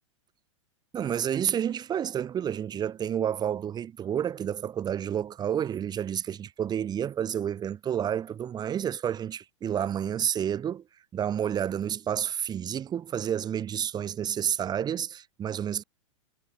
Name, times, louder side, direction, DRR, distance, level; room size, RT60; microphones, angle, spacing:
voice 1, 0.9-10.8 11.1-15.8, right 9 dB, 25° right, 5.3 m, -30 dB
figure-of-eight pair, 100°, 17 cm